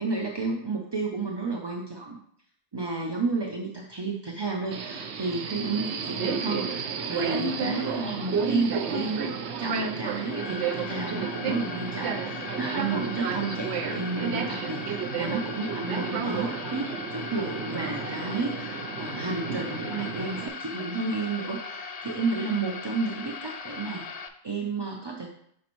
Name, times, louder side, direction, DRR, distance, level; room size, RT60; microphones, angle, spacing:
voice 1, 0.0-2.2 2.7-25.3, right 3 dB, 40° right, 0 dB, 0.4 m, -31 dB
Subway metro underground, 4.7-20.5, right 5 dB, 70° right, 0.8 m, -32 dB
sound 1, 10.1-24.3, left 5 dB, 90° left, 0.3 m, -39 dB
6.4 x 5.2 x 3.0 m, 0.68 s
omnidirectional pair, 1.2 m